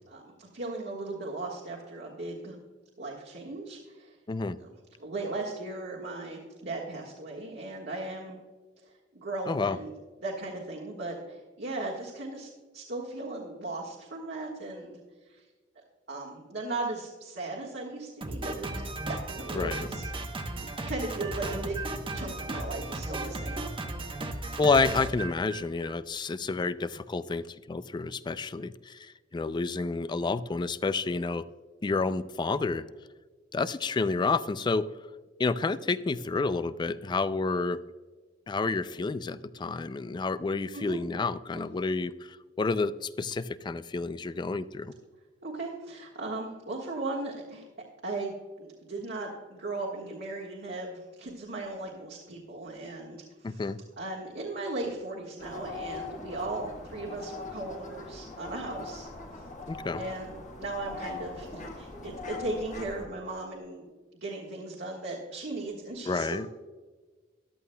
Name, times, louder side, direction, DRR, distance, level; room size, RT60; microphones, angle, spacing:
voice 1, 0.1-2.6 3.0-4.1 5.0-8.4 9.1-9.9 10.2-15.0 15.3-15.4 16.1-18.8 19.1-20.0 20.9-23.6 40.7-41.0 45.4-47.7 48.0-53.6 54.0-59.1 59.9-63.8 64.2-66.5, right 2 dB, 60° right, -3 dB, 1.5 m, -37 dB
voice 2, 9.5-9.8 19.5-19.9 24.6-31.4 31.8-32.9 33.5-34.9 35.4-37.8 38.5-44.9 53.4-53.8 59.7-60.1 66.1-66.5, left 3 dB, 25° left, 14 dB, 0.3 m, -29 dB
Drum kit, 18.2-26.0, right 2 dB, 30° right, 0.9 m, -35 dB
sound 1, 55.4-63.1, left 3 dB, 45° left, 1.3 m, -41 dB
14.0 x 11.0 x 2.2 m, 1.4 s
head